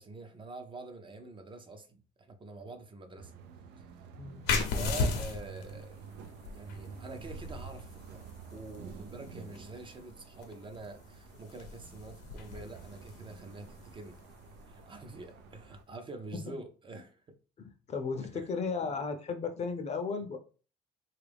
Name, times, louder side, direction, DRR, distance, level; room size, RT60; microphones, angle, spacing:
voice 1, 0.0-3.3 4.7-6.0 6.5-14.2 14.7-17.4 18.2-18.5, right 3 dB, 30° right, 0.6 m, -46 dB
sound 1, 3.2-15.8, right 6 dB, 85° right, 0.5 m, -50 dB
voice 2, 4.2-4.7 17.6-20.4, left 4 dB, 40° left, 0.6 m, -35 dB
sound 2, 4.4-15.7, left 4 dB, 90° left, 0.7 m, -38 dB
3.3 x 2.4 x 3.4 m
cardioid pair, 110°, 17 cm